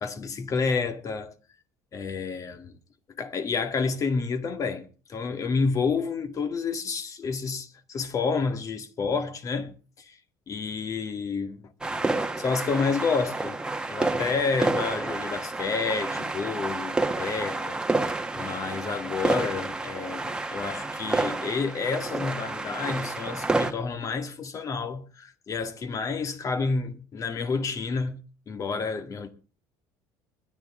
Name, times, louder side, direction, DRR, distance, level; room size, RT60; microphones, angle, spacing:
voice 1, 0.0-1.3 1.9-2.7 3.2-10.2 10.5-11.6 12.4-13.6 13.9-17.8 18.3-28.2 28.5-29.3, left 4 dB, 40° left, 1.9 m, -29 dB
sound 1, 11.8-23.7, right 2 dB, 10° right, 1.4 m, -29 dB
21.5 x 11.0 x 3.7 m
cardioid pair, 110°, 9 cm